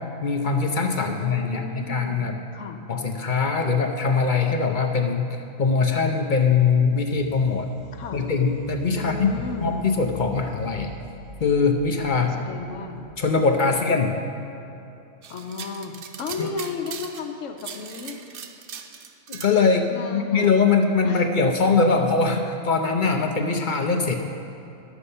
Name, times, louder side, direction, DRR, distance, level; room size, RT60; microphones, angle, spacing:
voice 1, 0.2-2.3 2.9-7.7 8.1-9.3 9.6-10.9 11.4-12.3 13.2-14.2 16.4-16.5 19.3-24.1, left 4 dB, 50° left, 4 dB, 0.7 m, -22 dB
voice 2, 1.0-2.2 2.5-2.8 7.9-8.2 8.9-9.7 12.2-13.1 13.5-14.0 15.3-18.2 19.9-20.5 21.0-21.2, left 4 dB, 75° left, 5 dB, 1.2 m, -34 dB
sound 1, 6.9-13.5, left 1 dB, 20° right, 2.8 m, -43 dB
sound 2, 15.2-17.3 17.6-19.5, right 7 dB, 55° right, 0.7 m, -39 dB
11.5 x 7.0 x 5.5 m, 2.8 s
omnidirectional pair, 1.3 m